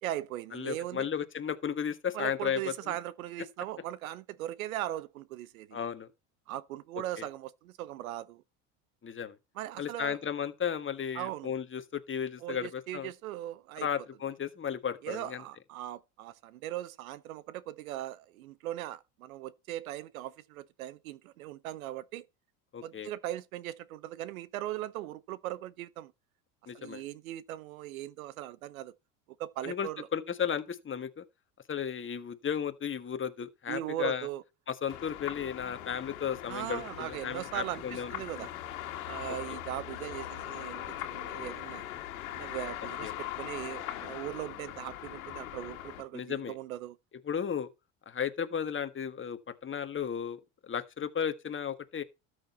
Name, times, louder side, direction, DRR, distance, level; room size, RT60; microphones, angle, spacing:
voice 1, 0.0-1.1 2.1-5.8 6.5-8.4 9.5-10.2 11.1-11.5 12.4-13.9 15.0-22.2 22.8-26.1 26.7-28.9 29.4-30.1 33.7-34.4 36.5-38.5 39.1-41.8 42.3-47.0, right 14 dB, 90° right, 0.9 m, -39 dB
voice 2, 0.5-2.9 5.7-6.1 7.2-7.3 9.0-9.4 9.8-13.1 13.8-15.4 22.7-23.1 26.7-27.0 29.6-31.2 31.7-34.3 34.7-38.5 43.0-43.1 46.1-46.5 47.2-47.7 48.1-52.0, left 8 dB, 30° left, 1.6 m, -34 dB
sound 1, 34.9-46.0, left 12 dB, 85° left, 2.0 m, -41 dB
13.0 x 6.6 x 4.3 m
hypercardioid pair, 80°, 40 cm